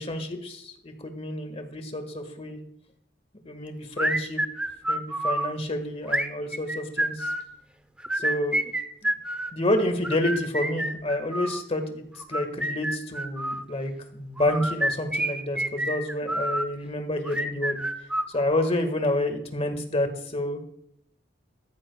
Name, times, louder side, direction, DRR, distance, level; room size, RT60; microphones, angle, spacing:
voice 1, 0.0-2.6 3.4-4.4 4.9-7.3 8.1-8.6 9.0-9.1 9.5-12.0 12.3-17.8 18.3-20.6, left 1 dB, 35° left, 6 dB, 1.7 m, -29 dB
sound 1, 4.0-5.5 6.1-7.5 8.0-9.5 10.0-11.6 12.2-13.6 14.4-16.7 17.2-18.7, right 1 dB, 5° right, 0.7 m, -28 dB
14.0 x 13.0 x 2.3 m, 0.69 s
head